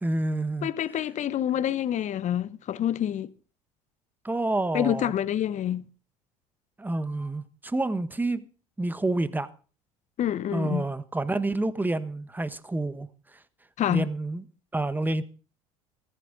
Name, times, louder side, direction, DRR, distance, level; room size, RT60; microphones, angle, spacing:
voice 1, 0.0-0.7 4.2-5.1 6.8-8.5 8.8-9.5 10.5-13.1 13.9-14.4 14.7-15.2, right 2 dB, 10° right, 1.2 m, -28 dB
voice 2, 0.6-3.3 4.7-5.9 10.2-10.9 13.8-14.1, left 10 dB, 40° left, 0.8 m, -27 dB
14.5 x 14.5 x 4.0 m
hypercardioid pair, 70°, 18 cm